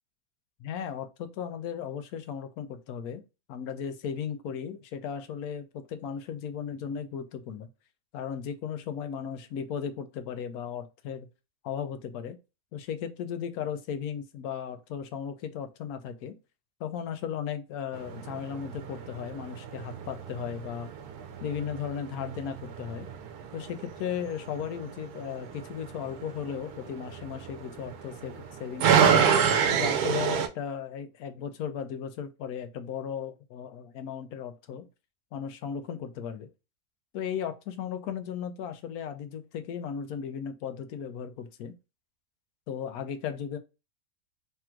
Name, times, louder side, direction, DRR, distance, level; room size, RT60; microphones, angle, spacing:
voice 1, 0.6-3.2 3.5-7.7 8.1-11.3 11.6-12.4 12.7-16.3 16.8-20.9 21.4-23.1 23.5-29.2 29.7-34.9 35.3-36.5 37.1-41.7 42.7-43.6, left 8 dB, 75° left, 1.1 m, -36 dB
sound 1, 17.9-30.5, right 7 dB, 80° right, 1.2 m, -29 dB
3.5 x 2.4 x 4.3 m
omnidirectional pair, 1.6 m